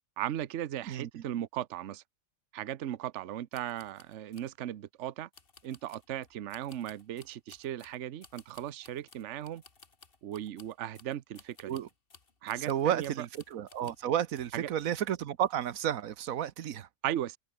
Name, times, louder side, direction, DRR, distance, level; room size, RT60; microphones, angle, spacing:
voice 1, 0.2-2.0 2.5-5.3 5.6-9.6 10.2-11.8 12.4-13.3 14.5-14.7 17.0-17.4, right 12 dB, 65° right, 1.1 m, -37 dB
voice 2, 0.9-1.2 11.7-11.9 12.7-16.9, right 10 dB, 85° right, 1.3 m, -32 dB
sound 1, 3.5-4.5 5.3-14.1 14.4-14.6 15.0-15.5 15.8-16.0, left 4 dB, 45° left, 2.1 m, -59 dB
omnidirectional pair, 1.4 m